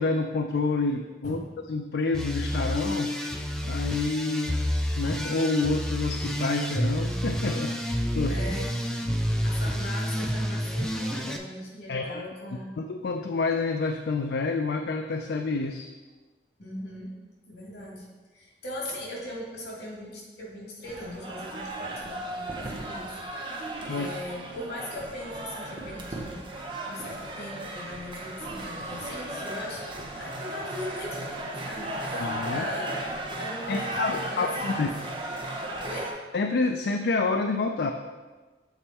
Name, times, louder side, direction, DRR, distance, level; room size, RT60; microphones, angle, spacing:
voice 1, 0.0-1.4 1.7-4.7 4.9-8.4 11.9-12.2 12.8-15.9 23.9-24.1 32.1-32.6 33.7-34.9 36.3-37.9, left 3 dB, 70° left, 4 dB, 0.4 m, -28 dB
sound 1, 2.1-11.4, equal, 5° left, 0.4 m, -29 dB
voice 2, 8.3-8.7 9.4-12.7 16.6-17.1 17.5-23.1 23.4-23.6 23.9-26.5 26.9-33.0 33.4-34.9 35.8-36.1, left 1 dB, 85° left, -4 dB, 2.2 m, -39 dB
sound 2, 20.8-36.1, right 1 dB, 30° right, 0.7 m, -35 dB
7.1 x 4.4 x 4.2 m, 1.3 s
head